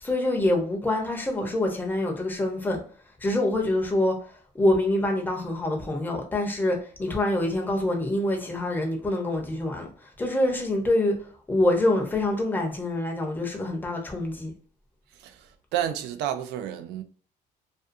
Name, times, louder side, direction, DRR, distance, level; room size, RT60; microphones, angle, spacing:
voice 1, 0.0-2.8 3.2-4.2 4.5-9.9 10.2-11.1 11.5-14.5, left 1 dB, 10° left, 0.7 m, -25 dB
voice 2, 15.2-17.0, right 11 dB, 85° right, 0.4 m, -31 dB
2.5 x 2.3 x 2.5 m
cardioid pair, 110°, 17 cm